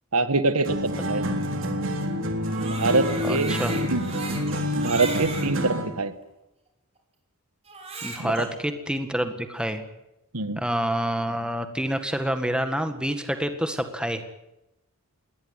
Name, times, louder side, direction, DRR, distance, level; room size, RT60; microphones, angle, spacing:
voice 1, 0.1-1.2 2.6-4.0 4.8-6.1 8.2-8.5 10.3-10.6, right 3 dB, 80° right, 11 dB, 1.5 m, -25 dB
sound 1, 0.6-6.0, equal, 60° right, 3.7 m, -28 dB
Crying sobbing, 2.4-5.5 6.2-6.3 7.7-8.5, right 3 dB, 30° right, 5.1 m, -36 dB
voice 2, 3.2-3.8 8.0-9.8 10.6-14.2, equal, 5° right, 7 dB, 1.8 m, -27 dB
21.0 x 19.0 x 9.7 m, 0.91 s
head